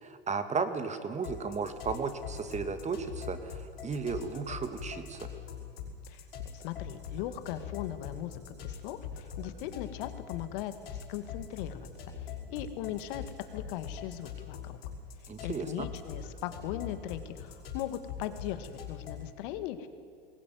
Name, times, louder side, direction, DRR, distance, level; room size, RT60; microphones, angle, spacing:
voice 1, 0.0-5.3 15.3-15.9, right 5 dB, 25° right, 9 dB, 2.1 m, -34 dB
sound 1, 1.2-19.4, left 7 dB, 80° left, 5.6 m, -43 dB
voice 2, 6.5-11.9 12.2-13.2 13.5-14.8 15.4-19.9, left 12 dB, 65° left, 10 dB, 2.0 m, -39 dB
21.0 x 18.0 x 9.5 m, 2.1 s
hypercardioid pair, 95°, 29 cm